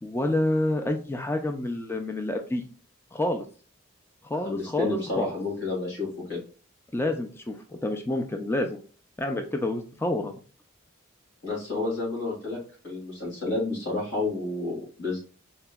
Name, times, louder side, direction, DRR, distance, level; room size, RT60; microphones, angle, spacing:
voice 1, 0.0-2.6 3.1-3.4 4.2-5.3 6.9-8.8 9.2-10.3, left 1 dB, 10° left, 5 dB, 0.3 m, -28 dB
voice 2, 4.4-6.4 11.4-12.6 12.8-15.2, left 3 dB, 60° left, -3 dB, 1.9 m, -30 dB
4.1 x 2.9 x 2.2 m, 0.37 s
head